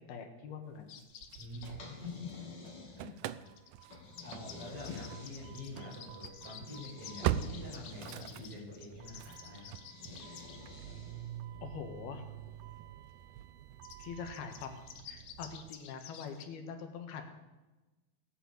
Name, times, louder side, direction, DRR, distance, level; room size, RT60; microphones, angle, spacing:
voice 1, 0.1-1.0 4.3-4.4 4.9-5.0 11.6-12.2 14.0-14.8 15.1-17.2, left 6 dB, 90° left, 6 dB, 3.5 m, -43 dB
sound 1, 0.9-1.7 3.5-10.6 13.8-16.5, left 8 dB, 65° left, 1.5 m, -51 dB
Engine starting / Slam, 1.0-2.4 2.7-15.7, right 12 dB, 90° right, 1.7 m, -43 dB
voice 2, 1.4-2.4 2.9-3.4 4.2-9.7, left 2 dB, 35° right, -4 dB, 7.5 m, -46 dB
sound 2, 1.6-3.3 3.9-5.9 6.7-8.6 9.8-11.4, left 4 dB, 40° left, 3.2 m, -50 dB
17.5 x 9.1 x 8.3 m, 1.1 s
omnidirectional pair, 4.3 m